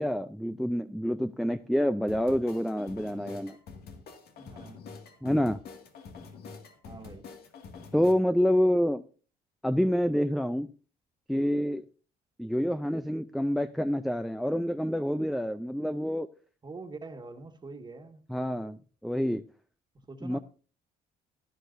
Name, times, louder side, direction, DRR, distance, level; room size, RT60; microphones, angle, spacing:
voice 1, 0.0-3.6 5.2-5.6 7.9-9.0 9.6-10.7 11.3-11.8 12.4-16.3 18.3-19.4 20.2-20.4, equal, ahead, 0.4 m, -27 dB
sound 1, 2.1-8.1, left 5 dB, 70° left, 2.1 m, -46 dB
voice 2, 4.4-4.8 5.3-5.4 6.8-7.3 16.6-18.2 20.1-20.4, right 3 dB, 25° right, 1.6 m, -44 dB
16.0 x 11.0 x 2.6 m
cardioid pair, 105°, 17 cm